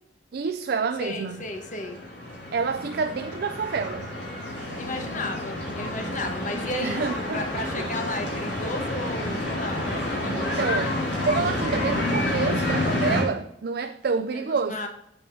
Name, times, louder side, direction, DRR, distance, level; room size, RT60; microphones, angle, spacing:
voice 1, 0.3-1.4 2.5-4.1 6.8-7.9 10.3-10.9 11.2-14.8, right 5 dB, 55° right, 0.4 m, -28 dB
voice 2, 1.0-2.0 4.8-10.3 14.3-14.9, left 1 dB, 45° left, 1.2 m, -34 dB
sound 1, 1.2-13.2, left 1 dB, 70° left, 3.1 m, -29 dB
8.0 x 4.8 x 6.0 m
head